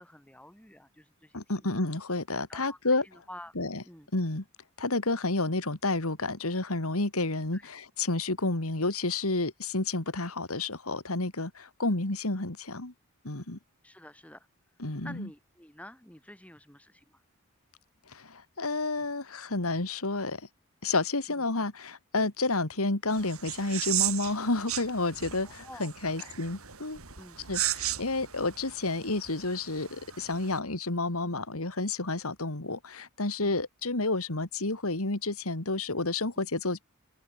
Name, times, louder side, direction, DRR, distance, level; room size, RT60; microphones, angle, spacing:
voice 1, 0.0-1.7 2.5-3.5 3.8-4.1 7.5-7.7 13.8-14.5 15.0-17.2 21.3-21.4 25.4-26.3 27.1-27.5 36.4-36.5, left 1 dB, 5° left, 2.9 m, -50 dB
voice 2, 1.3-3.0 3.6-3.8 4.1-4.4 4.8-12.9 13.2-13.6 14.8-15.3 18.1-20.4 20.8-27.0 27.5-36.8, left 2 dB, 85° left, 2.7 m, -30 dB
sound 1, 23.1-30.6, right 13 dB, 85° right, 4.4 m, -36 dB
head